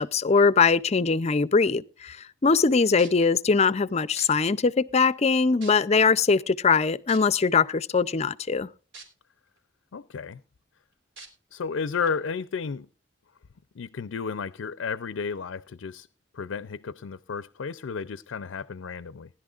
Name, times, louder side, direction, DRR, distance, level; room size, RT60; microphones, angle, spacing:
voice 1, 0.0-2.2 2.4-8.7, left 5 dB, 35° left, 0.5 m, -22 dB
sound 1, 3.0-3.3 4.2-4.3 5.0-5.1 5.6-6.0 7.1-7.2 8.9-9.1 9.6-9.7 11.2-11.3 12.0-12.1, right 3 dB, 70° right, 3.5 m, -43 dB
voice 2, 9.9-10.4 11.5-12.9 13.8-16.1 16.3-19.3, left 5 dB, 90° left, 0.5 m, -32 dB
20.0 x 11.0 x 2.4 m
head